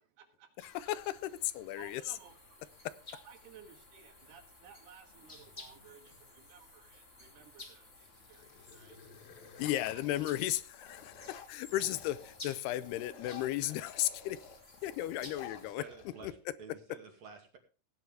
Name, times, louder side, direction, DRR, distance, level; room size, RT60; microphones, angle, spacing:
voice 1, 0.0-0.6 1.8-2.6 3.1-9.6, right 7 dB, 80° right, 6 dB, 3.8 m, -58 dB
voice 2, 0.6-2.2 9.6-14.4 14.8-15.8 16.2-16.3, left 14 dB, 85° left, 15 dB, 2.7 m, -35 dB
sound 1, 0.6-15.7, left 2 dB, 20° left, 2.3 m, -55 dB
sound 2, 0.9-1.8 3.5-3.6 3.9-4.4 5.0-6.5 7.1-7.5 7.9-12.4 12.7-16.6, left 6 dB, 70° left, 3.2 m, -54 dB
voice 3, 15.6-17.6, right 5 dB, 45° right, 3 dB, 3.2 m, -51 dB
17.5 x 9.8 x 3.4 m, 0.35 s
omnidirectional pair, 4.6 m